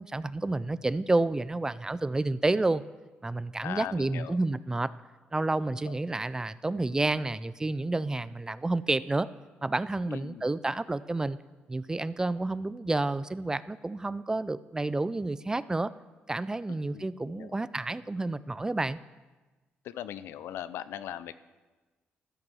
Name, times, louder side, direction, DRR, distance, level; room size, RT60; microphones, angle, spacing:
voice 1, 0.0-2.8 3.2-4.9 5.3-9.3 9.6-11.4 11.7-15.9 16.3-19.0, right 2 dB, 15° right, 17 dB, 0.3 m, -30 dB
voice 2, 3.6-4.4 5.7-5.9 10.1-10.5 16.9-17.1 17.4-17.5 19.8-21.3, left 11 dB, 85° left, 14 dB, 0.4 m, -39 dB
13.0 x 6.2 x 6.1 m, 1.2 s
cardioid pair, 90°, 4 cm